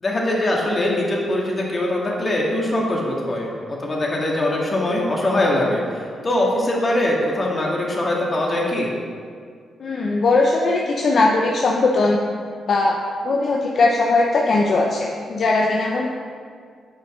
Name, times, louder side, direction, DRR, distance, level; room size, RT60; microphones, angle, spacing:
voice 1, 0.0-8.9, left 1 dB, 35° left, -2 dB, 1.9 m, -22 dB
voice 2, 9.8-12.2 12.7-16.1, left 3 dB, 60° left, -1 dB, 0.7 m, -19 dB
8.7 x 5.5 x 3.7 m, 2.1 s
supercardioid pair, 55°, 0 cm